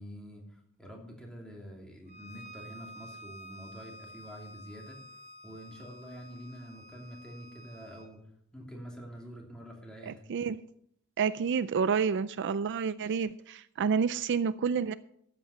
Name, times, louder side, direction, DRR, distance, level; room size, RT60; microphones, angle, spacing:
voice 1, 0.0-5.0 5.4-8.2 8.5-10.2, equal, 5° left, 2.8 m, -46 dB
Bowed string instrument, 2.1-8.1, equal, 30° right, 2.0 m, -50 dB
voice 2, 10.1-10.6 11.2-14.9, right 6 dB, 55° right, 0.4 m, -29 dB
13.5 x 8.3 x 5.6 m
head